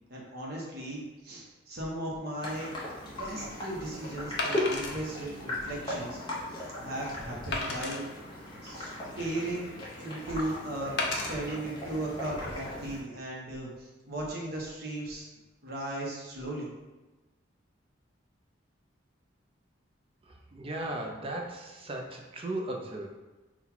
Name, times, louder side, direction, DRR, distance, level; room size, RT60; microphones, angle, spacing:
voice 1, 0.1-2.7 3.2-6.2 6.5-8.0 8.6-8.9 9.2-9.7 10.0-15.2 15.6-16.7, right 1 dB, 50° right, -3 dB, 0.8 m, -37 dB
sound 1, 2.4-13.0, left 1 dB, 25° left, 0.9 m, -38 dB
Wood, 2.8-2.9 4.4-5.0 5.6-5.7 6.2-6.3 7.5-8.0 8.8-9.6 11.0-11.3 12.1-12.3, left 3 dB, 60° left, 0.6 m, -33 dB
voice 2, 20.3-23.1, right 1 dB, 30° right, 1 dB, 0.5 m, -36 dB
3.9 x 2.3 x 4.3 m, 1.1 s
head